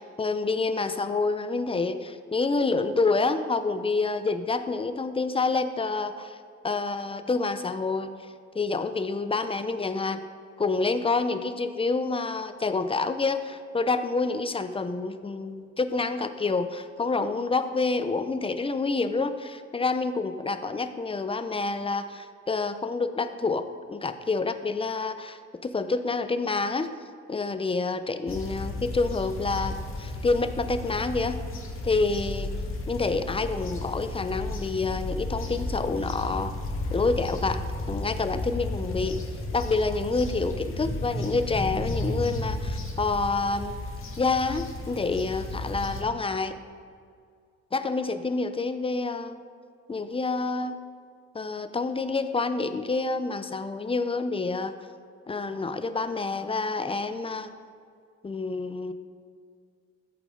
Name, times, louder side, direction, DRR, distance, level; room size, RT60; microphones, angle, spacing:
voice 1, 0.0-6.4 6.6-8.1 8.5-10.2 10.6-26.9 27.3-31.4 31.8-32.5 32.9-36.5 36.9-39.2 39.5-43.8 44.2-46.6 47.7-49.4 49.9-50.8 51.3-54.8 55.3-57.5 58.2-58.9, left 3 dB, 20° left, 10 dB, 0.7 m, -28 dB
sound 1, 28.3-46.0, left 2 dB, 45° left, 2.0 m, -33 dB
14.0 x 8.3 x 3.9 m, 2.2 s
cardioid pair, 90°, 30 cm